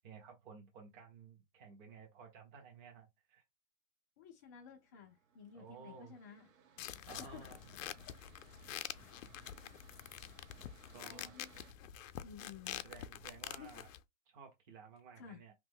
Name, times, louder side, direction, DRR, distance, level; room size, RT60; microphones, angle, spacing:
voice 1, 0.0-3.4 5.5-6.1 7.1-8.1 9.4-9.6 10.9-11.3 12.8-13.9 14.3-15.5, right 5 dB, 40° right, 1.3 m, -55 dB
voice 2, 4.2-6.5 7.0-7.5 8.1-8.2 11.0-11.5 12.2-12.8 13.6-13.7 15.2-15.4, left 7 dB, 15° left, 0.3 m, -54 dB
Mechanical fan, 4.7-11.7, right 6 dB, 85° right, 0.9 m, -65 dB
sound 1, 6.8-14.0, left 11 dB, 80° left, 0.5 m, -47 dB
sound 2, 8.6-13.8, right 6 dB, 55° right, 1.2 m, -68 dB
3.0 x 2.1 x 3.6 m
hypercardioid pair, 150°, 39 cm